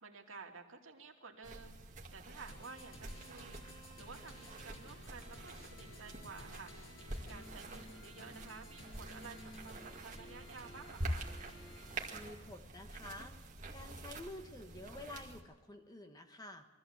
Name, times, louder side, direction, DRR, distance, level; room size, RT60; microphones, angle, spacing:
voice 1, 0.0-1.8 2.1-3.6 4.0-6.7 7.3-11.3, right 4 dB, 80° right, 1 dB, 2.6 m, -52 dB
sound 1, 1.4-15.4, right 1 dB, 40° right, 2.3 m, -47 dB
sound 2, 2.5-12.1, left 1 dB, 85° left, 6.3 m, -55 dB
voice 2, 12.1-13.4 13.7-16.7, left 1 dB, 20° left, 6 dB, 1.4 m, -50 dB
23.0 x 14.5 x 8.1 m, 1.3 s
head